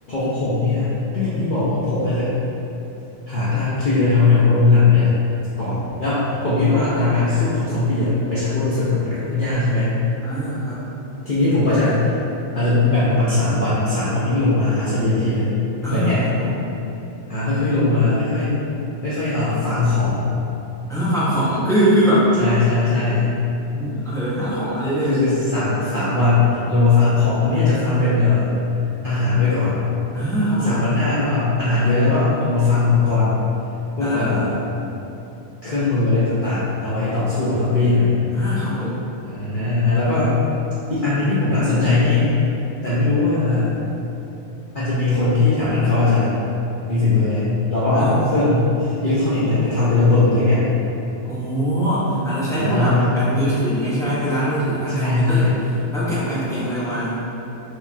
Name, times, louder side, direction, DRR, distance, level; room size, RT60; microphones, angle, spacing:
voice 1, 0.1-2.3 3.3-5.2 5.6-10.0 11.2-12.1 12.5-15.6 15.9-16.2 17.3-18.5 19.0-20.3 22.4-23.2 25.0-28.5 29.0-29.9 30.7-33.4 34.0-34.6 35.6-38.2 39.3-40.3 40.9-42.3 42.8-43.7 44.7-46.3 46.9-50.6 52.5-53.1 54.9-55.6, left 3 dB, 50° left, -11 dB, 0.6 m, -19 dB
voice 2, 10.2-10.8 15.8-16.6 20.9-22.3 23.7-25.3 30.1-30.8 34.0-34.4 38.3-39.0 47.9-48.2 51.2-57.2, right 1 dB, 5° left, -11 dB, 0.5 m, -22 dB
4.6 x 2.3 x 2.6 m, 2.9 s
omnidirectional pair, 1.4 m